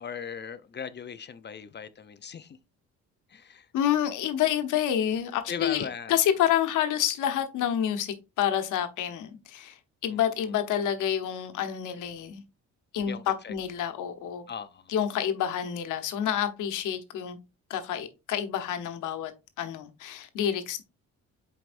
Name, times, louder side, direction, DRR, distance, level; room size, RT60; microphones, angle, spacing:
voice 1, 0.0-2.6 3.3-3.7 5.5-6.2 10.1-10.5 13.0-13.5 14.5-14.9, left 7 dB, 35° left, 0.6 m, -38 dB
voice 2, 3.7-12.4 12.9-14.4 14.9-17.4 17.7-19.3 19.6-20.8, left 10 dB, 85° left, 1.1 m, -28 dB
7.7 x 4.7 x 2.6 m
cardioid pair, 90°, 30 cm